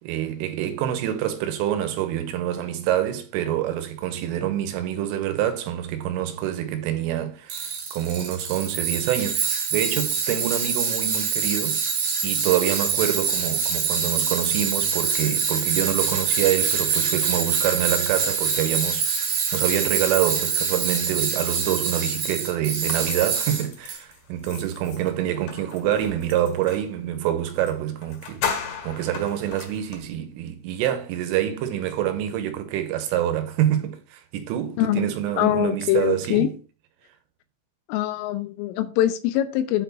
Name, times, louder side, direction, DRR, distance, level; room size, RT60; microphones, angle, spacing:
voice 1, 0.0-11.8 12.2-36.5, right 11 dB, 85° right, 3.4 m, -26 dB
Tools, 7.5-24.0, right 6 dB, 55° right, 2.9 m, -25 dB
sound 1, 22.9-26.9 27.6-27.7 28.0-30.0, left 6 dB, 60° left, 2.9 m, -35 dB
voice 2, 34.8-35.1 35.4-36.5 37.9-39.8, left 13 dB, 80° left, 3.2 m, -23 dB
8.4 x 4.6 x 5.4 m
omnidirectional pair, 5.8 m